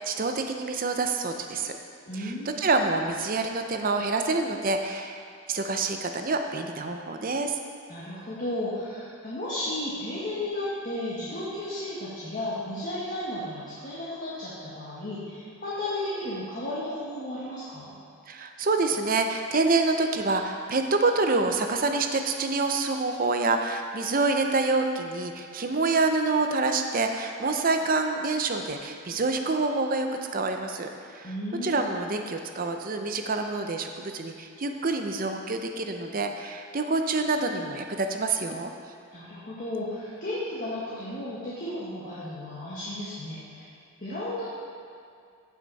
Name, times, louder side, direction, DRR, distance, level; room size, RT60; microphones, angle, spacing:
voice 1, 0.0-1.8 2.1-5.2 5.5-7.6 18.3-31.3 31.6-38.7, right 3 dB, 40° right, 5 dB, 0.6 m, -27 dB
voice 2, 2.0-2.6 7.9-17.9 31.2-31.8 39.1-43.6 44.0-44.5, left 1 dB, 35° left, -9 dB, 1.6 m, -34 dB
15.0 x 5.9 x 4.1 m, 2.3 s
head